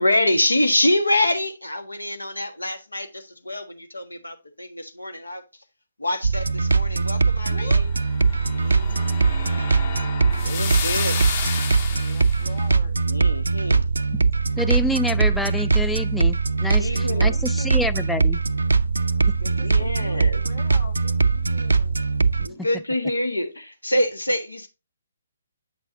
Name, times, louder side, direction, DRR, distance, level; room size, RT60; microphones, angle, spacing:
voice 1, 0.0-5.4 6.0-7.9 8.4-9.2 10.4-11.2 13.1-13.8 16.8-17.3 19.6-20.4 22.4-24.7, left 1 dB, 80° left, 1.4 m, -26 dB
sound 1, 6.2-22.5, right 4 dB, 70° right, 0.5 m, -21 dB
voice 2, 7.5-7.8 11.9-13.0 16.9-18.1 19.4-22.0, left 4 dB, 60° left, 1.7 m, -41 dB
sound 2, 7.9-12.5, left 6 dB, 40° left, 1.3 m, -32 dB
voice 3, 14.6-16.9 17.2-18.4, left 1 dB, 5° left, 0.3 m, -27 dB
8.0 x 6.1 x 2.6 m
figure-of-eight pair, 135°, 0 cm